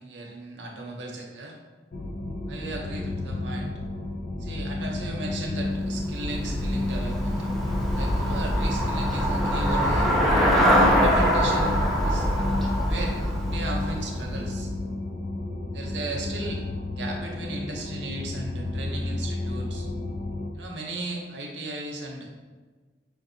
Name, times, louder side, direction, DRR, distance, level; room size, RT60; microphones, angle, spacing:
voice 1, 0.0-1.6 2.5-3.7 4.4-7.4 8.0-10.1 10.5-12.3 12.9-14.7 15.7-16.6 16.9-19.9 20.5-22.3, right 2 dB, 80° right, 0 dB, 0.7 m, -36 dB
sound 1, 1.9-20.5, left 2 dB, 50° left, 0.4 m, -32 dB
Traffic noise roadway noise / Bicycle, 5.5-14.7, equal, ahead, 0.5 m, -24 dB
4.8 x 2.6 x 2.6 m, 1.4 s
head